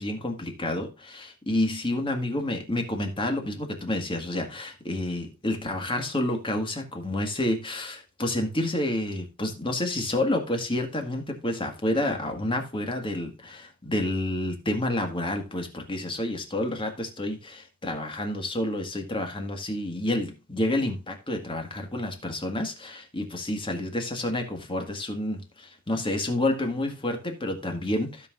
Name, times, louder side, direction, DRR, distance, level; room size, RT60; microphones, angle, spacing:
voice 1, 0.0-28.3, left 1 dB, 25° left, 1.8 m, -29 dB
16.0 x 5.7 x 2.5 m
head